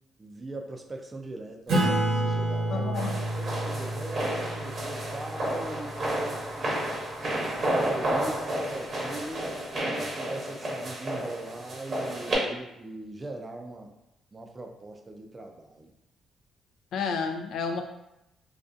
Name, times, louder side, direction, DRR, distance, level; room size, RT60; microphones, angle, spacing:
voice 1, 0.2-7.0 7.6-9.5 9.8-13.9 14.3-15.9, right 2 dB, 25° right, 3 dB, 0.4 m, -40 dB
Acoustic guitar / Strum, 1.7-6.7, right 1 dB, 75° right, 0.9 m, -30 dB
voice 2, 2.7-3.1 16.9-17.8, left 5 dB, 75° left, 5 dB, 0.3 m, -30 dB
sound 1, 2.9-12.4, right 1 dB, 45° right, 0.8 m, -31 dB
2.5 x 2.2 x 2.5 m, 0.87 s
cardioid pair, 90°, 0 cm